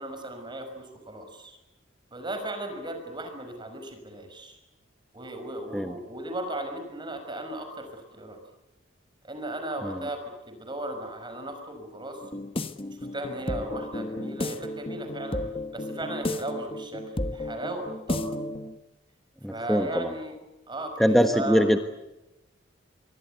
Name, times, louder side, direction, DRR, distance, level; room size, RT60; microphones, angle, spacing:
voice 1, 0.0-1.6 2.1-4.6 5.1-8.4 9.2-10.2 10.5-12.2 12.9-15.4 15.7-17.0 17.3-18.3 19.5-20.4 20.7-21.7, right 1 dB, 25° right, 6 dB, 5.8 m, -36 dB
sound 1, 12.2-18.8, left 1 dB, 30° left, 1.3 m, -33 dB
voice 2, 19.4-20.1 21.0-21.8, equal, ahead, 6 dB, 1.3 m, -22 dB
26.0 x 23.5 x 8.3 m, 0.96 s
head